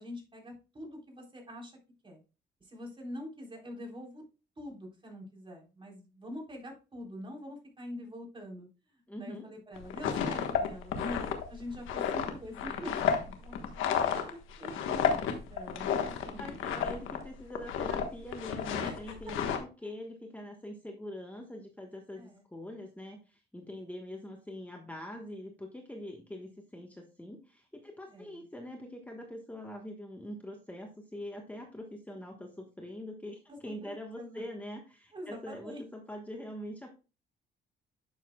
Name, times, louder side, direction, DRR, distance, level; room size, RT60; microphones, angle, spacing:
voice 1, 0.0-1.7 2.0-2.2 2.6-4.2 4.6-8.7 8.9-16.5 18.7-19.6 22.2-22.4 28.1-28.4 33.5-34.4 35.1-35.8, equal, 25° right, 0 dB, 3.8 m, -45 dB
voice 2, 9.1-9.5 12.0-12.1 16.4-37.0, left 1 dB, 5° left, 2 dB, 1.3 m, -44 dB
sound 1, 9.8-17.2 17.5-18.0 18.3-19.6, left 8 dB, 90° left, 1.3 m, -31 dB
10.0 x 6.8 x 2.3 m, 0.32 s
cardioid pair, 90°, 20 cm